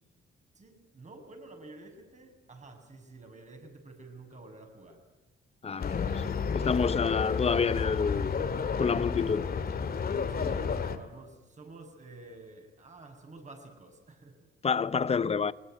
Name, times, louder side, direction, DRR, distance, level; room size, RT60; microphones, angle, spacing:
voice 1, 0.6-5.0 10.3-14.5, right 2 dB, 35° right, 7.0 m, -50 dB
voice 2, 5.6-6.2 6.5-8.3 8.8-9.5 14.6-15.5, left 5 dB, 30° left, 0.9 m, -28 dB
sound 1, 5.8-11.0, left 6 dB, 50° left, 2.3 m, -31 dB
21.0 x 21.0 x 9.1 m
cardioid pair, 90°, 20 cm